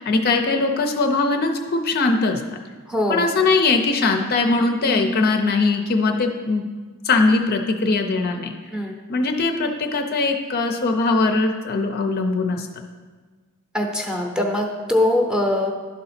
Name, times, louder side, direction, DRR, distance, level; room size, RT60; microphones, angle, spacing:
voice 1, 0.0-2.4 3.1-6.6 7.0-8.5 9.1-12.9, left 3 dB, 45° left, 4 dB, 0.5 m, -21 dB
voice 2, 2.9-3.3 8.7-9.0 13.7-15.7, left 1 dB, 5° right, 1 dB, 0.7 m, -22 dB
11.0 x 3.9 x 4.2 m, 1.4 s
head